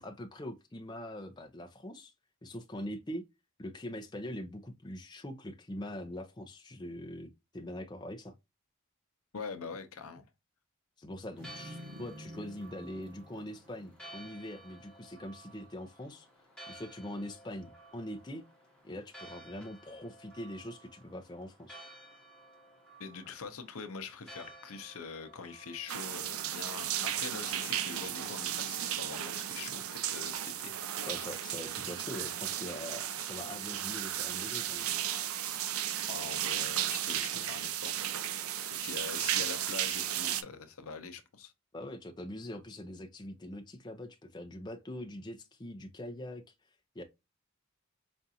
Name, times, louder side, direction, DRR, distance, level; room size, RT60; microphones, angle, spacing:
voice 1, 0.0-2.1 2.4-3.2 3.6-8.3 11.0-16.3 16.7-18.4 18.8-21.8 31.1-34.9 41.7-46.4 46.9-47.0, left 1 dB, 20° left, 0.5 m, -43 dB
voice 2, 9.3-10.3 23.0-30.7 36.1-37.9 38.6-41.5, left 5 dB, 80° left, 0.6 m, -44 dB
Church bell, 11.3-27.9, right 1 dB, 5° left, 1.0 m, -54 dB
sound 1, 11.4-14.7 15.1-15.2, equal, 55° right, 1.1 m, -50 dB
sound 2, 25.9-40.4, right 11 dB, 85° right, 0.5 m, -35 dB
5.1 x 2.4 x 2.7 m
head